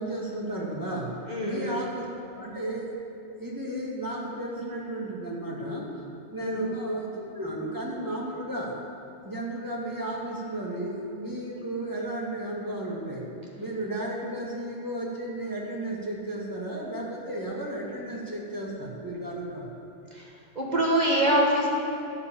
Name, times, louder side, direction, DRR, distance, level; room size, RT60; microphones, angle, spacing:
voice 1, 0.0-1.2 1.4-2.9 3.4-5.9 6.3-8.7 9.2-13.2 13.6-19.7, right 1 dB, 15° right, -4 dB, 2.1 m, -33 dB
voice 2, 1.3-1.8 6.4-6.6 20.1-20.3 20.5-21.7, right 1 dB, 40° right, -3 dB, 1.7 m, -24 dB
12.0 x 5.7 x 8.6 m, 2.8 s
omnidirectional pair, 1.2 m